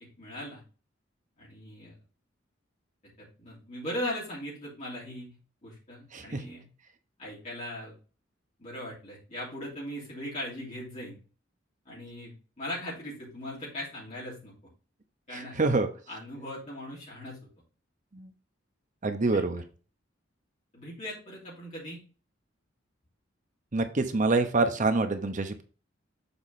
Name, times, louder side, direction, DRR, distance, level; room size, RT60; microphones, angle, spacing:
voice 1, 0.2-0.6 1.4-1.9 3.2-5.4 5.6-6.7 7.2-8.0 8.6-11.2 11.8-14.5 15.3-15.6 16.1-17.4 19.3-19.4 20.7-22.0, left 1 dB, 40° left, -7 dB, 3.0 m, -39 dB
voice 2, 15.3-15.9 18.1-18.3 19.0-19.6 23.7-25.6, right 3 dB, 40° right, 8 dB, 0.9 m, -26 dB
7.1 x 4.3 x 4.2 m, 0.36 s
head